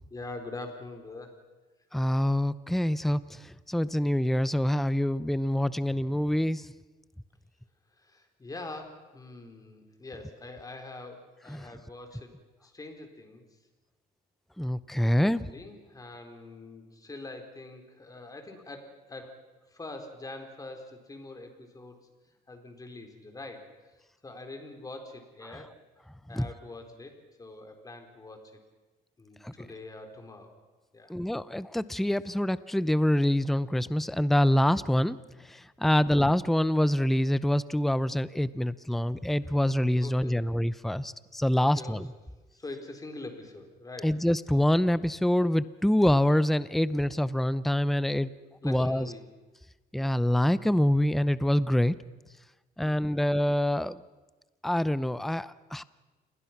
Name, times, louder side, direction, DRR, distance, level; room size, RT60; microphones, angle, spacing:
voice 1, 0.1-1.4 8.0-12.3 12.6-13.4 15.0-19.4 19.7-22.0 22.5-23.7 24.2-25.7 26.3-27.1 27.4-28.5 29.2-30.5 30.9-31.1 40.0-40.5 41.7-42.0 42.6-44.2 48.6-49.3 52.8-53.2, left 2 dB, 20° left, 5 dB, 4.2 m, -44 dB
voice 2, 1.9-3.2 3.7-6.6 11.5-11.6 14.6-15.5 26.3-26.5 29.4-29.5 31.1-35.2 35.8-42.1 44.0-48.3 48.6-49.1 49.9-51.9 52.8-54.0 54.6-55.8, left 1 dB, ahead, 16 dB, 0.7 m, -25 dB
28.5 x 21.0 x 6.0 m, 1.2 s
cardioid pair, 105°, 17 cm